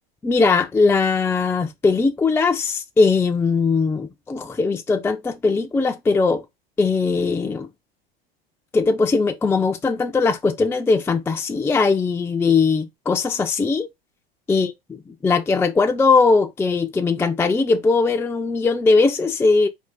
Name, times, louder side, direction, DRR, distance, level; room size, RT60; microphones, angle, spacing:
voice 1, 0.2-6.4 6.8-7.7 8.7-13.9 14.5-14.7 15.2-19.7, left 4 dB, 10° left, 0.4 m, -19 dB
4.7 x 2.7 x 3.9 m
figure-of-eight pair, 85°, 30 cm